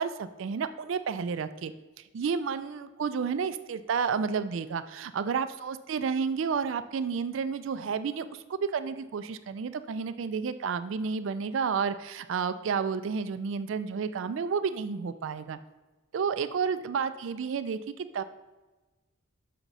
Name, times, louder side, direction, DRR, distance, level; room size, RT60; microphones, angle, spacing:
voice 1, 0.0-1.7 2.1-15.6 16.1-18.2, right 6 dB, 65° right, 12 dB, 0.4 m, -31 dB
6.6 x 5.9 x 4.0 m, 1.2 s
head